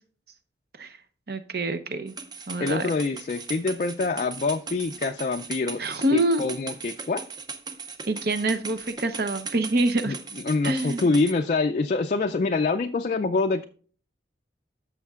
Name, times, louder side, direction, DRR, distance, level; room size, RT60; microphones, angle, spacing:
voice 1, 1.3-2.2 2.5-2.9 5.8-6.4 8.1-10.2 10.6-11.1, right 1 dB, 55° right, 10 dB, 0.7 m, -26 dB
sound 1, 2.1-11.3, right 4 dB, 20° right, 0.5 m, -38 dB
voice 2, 2.6-5.8 6.1-7.2 10.1-10.2 10.4-13.7, left 3 dB, 40° left, 5 dB, 0.3 m, -25 dB
14.0 x 6.4 x 2.4 m, 0.43 s
head